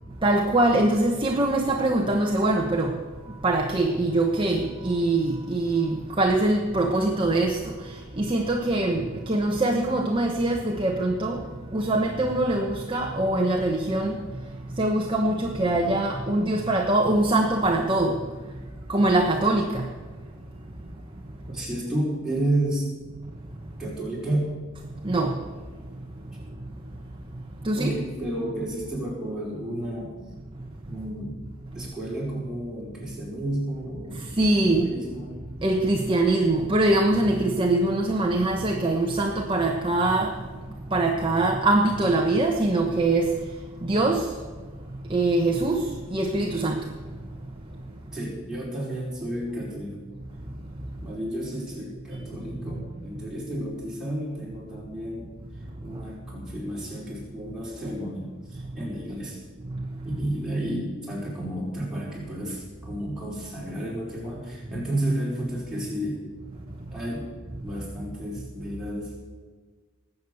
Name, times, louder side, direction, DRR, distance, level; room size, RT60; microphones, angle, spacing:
voice 1, 0.2-3.0 3.4-11.4 11.7-14.2 14.8-18.2 18.9-19.9 25.0-25.4 27.6-27.9 34.4-34.9 35.6-40.4 40.9-43.3 43.8-44.3 45.1-46.8, right 2 dB, 25° right, 1 dB, 1.1 m, -23 dB
voice 2, 21.5-22.9 23.8-24.6 27.8-30.1 30.9-31.4 31.7-34.2 34.8-35.4 48.1-50.0 51.0-55.3 55.8-59.4 60.0-66.2 66.9-67.3 67.6-69.2, right 1 dB, 5° right, -6 dB, 4.9 m, -31 dB
19.5 x 8.2 x 7.0 m, 1.4 s
head